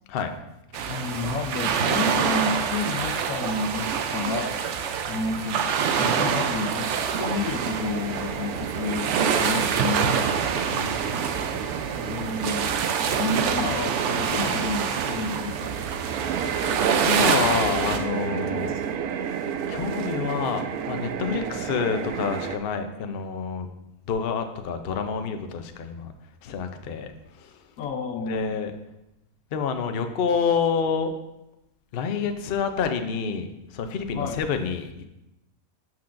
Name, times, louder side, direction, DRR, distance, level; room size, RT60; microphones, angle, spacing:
sound 1, 0.7-18.0, right 7 dB, 65° right, 0.8 m, -26 dB
voice 1, 0.9-4.6 5.1-5.6 6.0-6.9 7.2-10.3 12.0-12.7 13.1-15.7 21.3-21.6 27.8-28.6 34.1-34.4, left 3 dB, 80° left, 7 dB, 1.1 m, -30 dB
sound 2, 7.2-22.6, right 7 dB, 85° right, 1.1 m, -32 dB
voice 2, 10.7-11.3 16.4-16.7 17.0-18.8 19.7-23.7 24.1-26.1 26.4-27.1 28.3-28.7 29.5-31.1 31.9-33.5 33.7-35.0, left 6 dB, 55° left, 6 dB, 0.7 m, -28 dB
11.5 x 6.1 x 2.5 m, 0.91 s
omnidirectional pair, 1.5 m